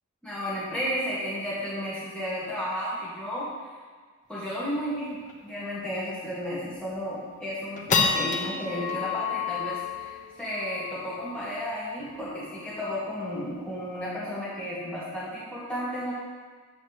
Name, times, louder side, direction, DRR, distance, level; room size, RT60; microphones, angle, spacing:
voice 1, 0.2-3.5 4.3-5.2 5.4-16.1, equal, 5° left, -10 dB, 1.9 m, -33 dB
sound 1, 4.4-4.5 4.8-4.9 5.2-5.5 6.0-6.1 6.6-7.0 7.4-14.0, left 5 dB, 35° left, 0.8 m, -31 dB
8.5 x 6.9 x 3.2 m, 1.5 s
head